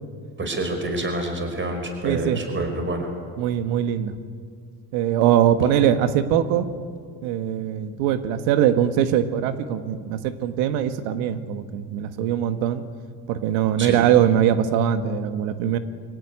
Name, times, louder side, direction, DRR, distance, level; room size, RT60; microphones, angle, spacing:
voice 1, 0.4-3.1 13.8-14.0, right 1 dB, 25° right, 5 dB, 5.2 m, -27 dB
voice 2, 2.0-2.4 3.4-4.1 4.9-6.7 7.2-12.8 13.3-15.8, right 10 dB, 85° right, 10 dB, 1.6 m, -21 dB
24.0 x 17.5 x 9.4 m, 2.1 s
supercardioid pair, 90°, 46 cm